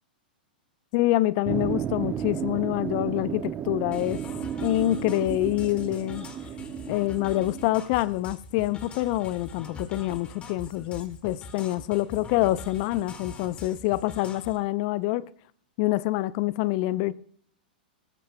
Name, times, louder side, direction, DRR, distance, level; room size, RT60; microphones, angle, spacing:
voice 1, 0.9-4.2 4.6-6.3 6.9-15.2 15.8-17.1, left 16 dB, 50° left, 0.6 m, -26 dB
sound 1, 1.4-7.7, right 9 dB, 25° right, 0.7 m, -33 dB
sound 2, 3.9-14.6, left 3 dB, 25° left, 2.1 m, -43 dB
19.5 x 15.0 x 2.2 m
hypercardioid pair, 100°, 5 cm